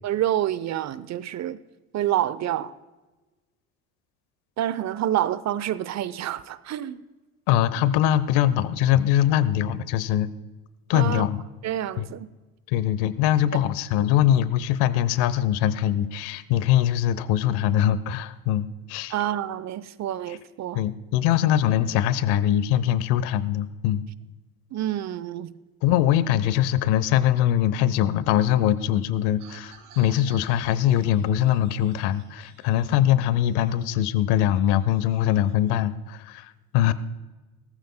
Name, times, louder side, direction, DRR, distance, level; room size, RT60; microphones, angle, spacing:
voice 1, 0.0-1.6 1.9-2.7 4.6-7.0 10.9-11.3 11.6-12.3 19.1-20.8 24.7-25.5, right 12 dB, 35° right, 0.8 m, -27 dB
voice 2, 7.5-10.3 10.9-11.4 12.0-12.1 12.7-19.1 20.7-24.0 25.8-36.9, left 11 dB, 60° left, 0.9 m, -22 dB
sound 1, 29.4-35.7, right 5 dB, 75° right, 3.1 m, -53 dB
19.0 x 14.0 x 2.2 m
hypercardioid pair, 65°, 45 cm